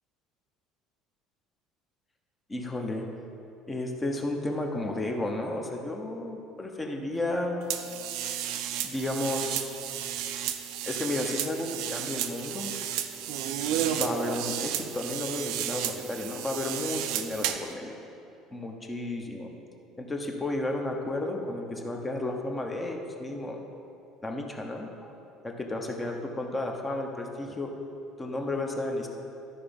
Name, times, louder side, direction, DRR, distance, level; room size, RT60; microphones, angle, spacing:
voice 1, 2.5-3.1 3.7-7.7 8.8-9.8 10.8-12.7 13.8-18.0 18.5-19.5 20.0-23.6 24.2-25.1 25.4-27.7 28.2-29.1, left 2 dB, 15° left, 2 dB, 0.7 m, -32 dB
sound 1, 7.7-17.7, right 10 dB, 65° right, 0.5 m, -33 dB
12.5 x 4.9 x 5.2 m, 2.8 s
cardioid pair, 170°, 0 cm